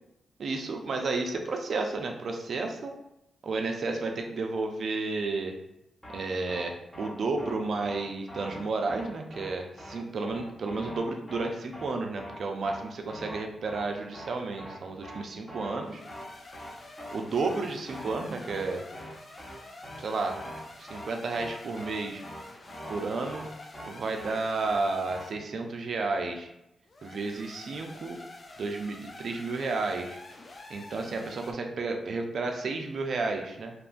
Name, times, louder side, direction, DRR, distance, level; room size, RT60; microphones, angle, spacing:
voice 1, 0.4-2.9 3.4-5.6 6.1-16.0 17.1-18.8 20.0-20.4 20.8-22.2 22.9-23.5 23.9-26.5 27.0-28.2 28.6-30.2 30.7-33.7, right 3 dB, 65° right, 4 dB, 0.4 m, -32 dB
sound 1, 6.0-6.2 6.5-6.6 6.9-7.1 7.4-7.5 7.8-8.0 8.3-8.6 8.9-9.0 9.3-9.5 9.8-9.9 10.2-10.4 10.7-11.0 11.3-11.4 11.7-11.9 12.2-12.4 12.6-12.8 13.1-13.4 13.7-13.9 14.1-14.3 14.6-14.8 15.0-15.2 15.5-15.8 16.1-16.3 16.5-16.7 17.0-17.1 17.4-17.6 17.9-18.2 18.5-18.6 18.9-19.1 19.4-19.5 19.8-20.0 20.3-20.6 20.9-21.1 21.3-21.5 21.8-21.9 22.2-22.4 22.7-23.0 23.3-23.4 23.7-23.9 24.2-24.4 24.6-24.8 25.1-25.2, equal, 15° left, 0.9 m, -42 dB
sound 2, 15.8-25.4 26.9-31.5, left 2 dB, 45° left, 0.4 m, -48 dB
2.9 x 2.2 x 2.4 m, 0.85 s
cardioid pair, 60°, 0 cm